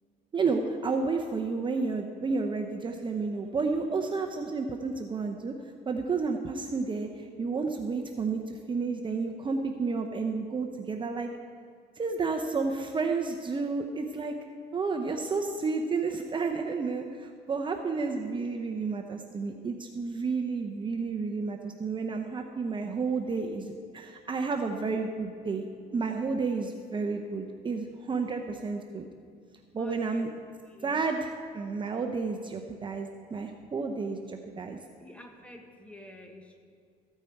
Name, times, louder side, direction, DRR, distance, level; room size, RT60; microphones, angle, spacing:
voice 1, 0.3-5.5 5.9-11.3 12.0-14.3 14.7-29.1 29.7-30.3 30.8-34.8, right 4 dB, 30° right, 3 dB, 0.7 m, -31 dB
voice 2, 29.8-30.3 30.7-31.0 35.0-36.6, left 1 dB, 5° left, 3 dB, 1.4 m, -48 dB
14.5 x 8.9 x 4.6 m, 2.2 s
cardioid pair, 110°, 17 cm